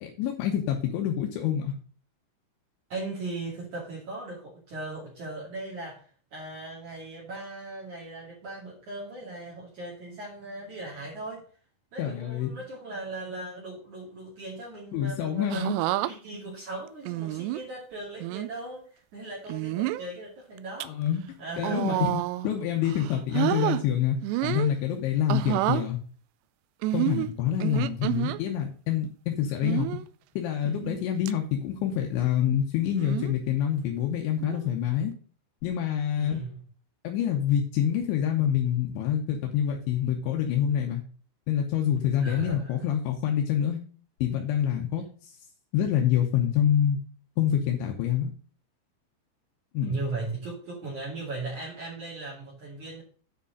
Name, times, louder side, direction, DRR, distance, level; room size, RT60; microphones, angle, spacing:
voice 1, 0.0-1.7 12.0-12.5 14.9-15.8 20.9-21.2 21.6-26.0 26.9-29.9 30.4-35.1 35.6-36.4 37.1-41.0 41.5-43.8 44.2-45.0 45.7-47.0 47.4-48.3 49.8-50.0, left 9 dB, 80° left, 1 dB, 3.4 m, -26 dB
voice 2, 2.9-11.4 11.9-15.6 16.0-20.9 21.4-22.0 36.2-36.6 42.2-42.7 49.8-53.0, right 3 dB, 45° right, -5 dB, 3.4 m, -38 dB
sound 1, 15.5-16.1 17.1-17.6 18.2-18.5 19.5-20.1 20.6-20.9 21.6-22.5 22.9-23.8 24.2-24.7 25.3-25.9 26.8-28.4 29.6-30.0 30.7-31.0 31.3-31.4 33.0-33.4 34.4-34.7, right 16 dB, 85° right, 2.6 m, -29 dB
9.3 x 5.1 x 6.5 m, 0.42 s
omnidirectional pair, 5.3 m